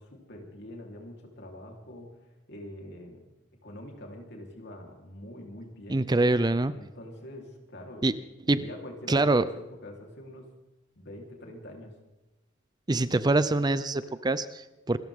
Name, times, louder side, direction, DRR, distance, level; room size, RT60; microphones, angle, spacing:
voice 1, 0.0-2.1 2.5-3.3 3.6-6.0 6.7-8.1 8.5-9.5 9.8-10.4 11.0-11.9, left 1 dB, 60° left, 1 dB, 3.7 m, -44 dB
voice 2, 5.9-6.7 8.0-8.2 8.5-8.6 9.1-9.5 12.9-15.0, right 2 dB, 20° right, 14 dB, 0.5 m, -24 dB
27.0 x 14.0 x 3.7 m, 0.99 s
head